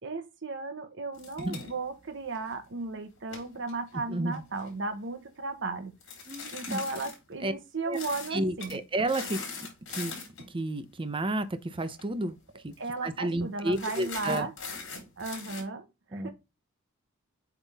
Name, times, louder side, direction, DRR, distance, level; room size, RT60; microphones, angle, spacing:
voice 1, 0.0-5.9 6.5-8.8 12.8-14.5 15.2-16.3, right 3 dB, 60° right, 1.1 m, -35 dB
sound 1, 1.1-2.7 3.2-4.7 6.0-7.2 7.9-8.3 8.6-8.8 9.1-10.5 11.8-12.0 12.3-12.4 12.7-13.1 13.7-15.6, left 4 dB, 60° left, 3.9 m, -41 dB
voice 2, 3.9-4.4 6.3-6.8 7.4-7.5 7.9-8.0 8.3-9.4 9.9-10.1 10.5-12.4 12.6-12.7 13.0-14.5 16.1-16.3, right 1 dB, 25° right, 0.7 m, -31 dB
8.2 x 3.7 x 3.5 m
head